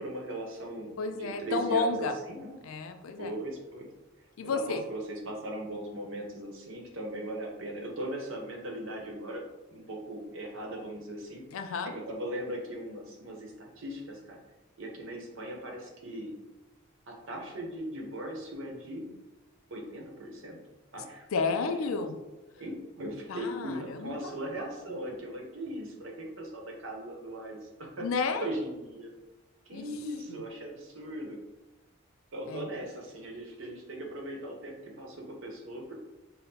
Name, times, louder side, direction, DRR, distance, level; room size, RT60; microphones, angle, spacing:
voice 1, 0.0-2.6 3.2-3.9 4.4-9.4 9.7-11.4 11.9-14.4 14.8-16.3 17.1-19.1 19.7-20.6 20.9-21.3 21.9-22.0 22.6-28.1 28.4-29.1 29.7-31.4 32.3-35.9, right 1 dB, 70° right, 0 dB, 0.8 m, -39 dB
voice 2, 1.0-2.1 2.6-3.3 4.4-4.8 11.5-11.9 21.3-22.2 23.3-24.3 28.0-28.5 29.7-29.9 30.3-30.4 32.5-32.7, left 4 dB, 80° left, 7 dB, 0.4 m, -31 dB
5.2 x 2.0 x 2.8 m, 1.1 s
head